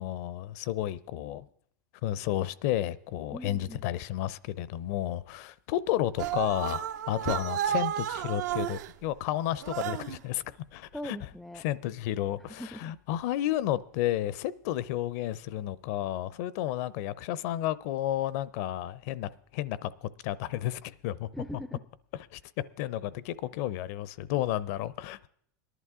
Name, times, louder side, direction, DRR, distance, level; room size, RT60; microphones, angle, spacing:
voice 1, 0.0-1.5 2.0-10.4 10.7-11.2 11.6-21.3 22.1-22.4 22.8-25.3, left 13 dB, 60° left, 0.6 m, -32 dB
voice 2, 3.3-3.8 10.9-11.6 12.5-12.9 21.3-21.8, equal, ahead, 0.4 m, -40 dB
sound 1, 6.2-8.9 9.6-10.2, right 11 dB, 75° right, 0.7 m, -32 dB
18.5 x 11.0 x 3.7 m
supercardioid pair, 125°, 9 cm